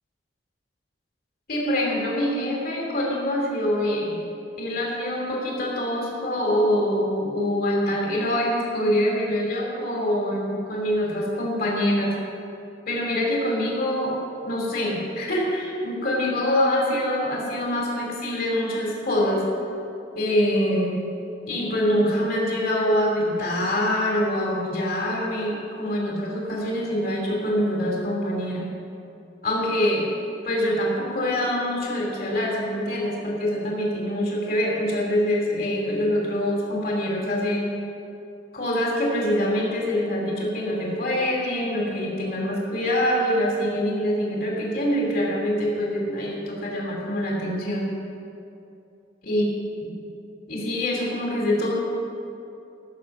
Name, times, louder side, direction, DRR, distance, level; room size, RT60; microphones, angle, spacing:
voice 1, 1.5-4.2 4.6-12.1 12.9-14.2 14.4-19.4 20.1-20.9 21.5-28.7 29.4-30.1 30.4-37.7 38.5-47.9 49.2-49.5 49.8-49.9 50.5-51.7, left 1 dB, 50° left, -2 dB, 2.6 m, -25 dB
15.0 x 6.6 x 6.5 m, 2.7 s
head